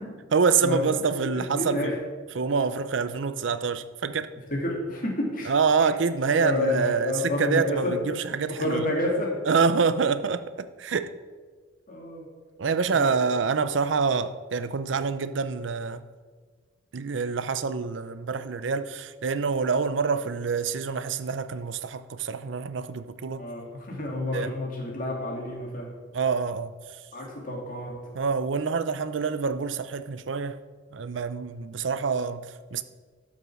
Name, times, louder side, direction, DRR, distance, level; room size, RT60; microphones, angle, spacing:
voice 1, 0.3-2.0 2.3-4.3 5.5-8.8 9.5-11.1 12.6-16.1 16.9-23.5 24.3-24.5 26.1-26.8 28.1-30.6 30.9-32.8, right 5 dB, 75° right, 0.5 m, -26 dB
voice 2, 1.3-2.0 4.5-5.5 6.3-7.8 8.6-9.3 11.9-12.3 12.9-13.1 23.4-25.9 27.1-27.9, left 1 dB, 45° left, 2.6 m, -29 dB
12.5 x 5.5 x 6.2 m
head